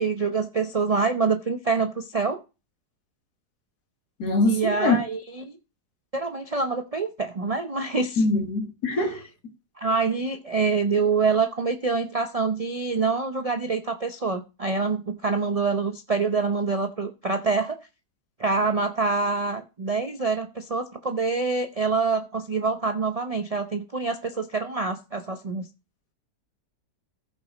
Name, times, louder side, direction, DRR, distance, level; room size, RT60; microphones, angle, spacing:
voice 1, 0.0-2.4 4.5-5.6 6.1-8.2 9.8-17.8 18.4-25.7, right 4 dB, 70° right, 0.3 m, -26 dB
voice 2, 4.2-5.0 8.2-9.2, left 3 dB, 65° left, 2.3 m, -23 dB
14.5 x 5.1 x 5.0 m
omnidirectional pair, 1.8 m